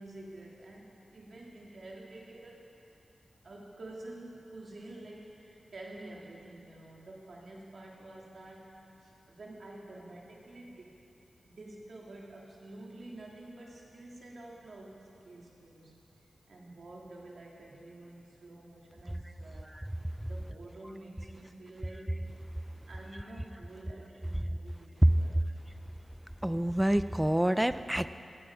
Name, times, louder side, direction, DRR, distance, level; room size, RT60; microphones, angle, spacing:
voice 1, 0.0-2.7 3.4-11.0 11.4-15.9 16.2-19.7 20.3-22.2 22.9-25.4, right 2 dB, 60° right, -3 dB, 2.8 m, -49 dB
voice 2, 26.4-28.1, right 1 dB, 5° right, 12 dB, 0.4 m, -26 dB
16.5 x 16.5 x 4.9 m, 2.8 s
wide cardioid pair, 140°, 0 cm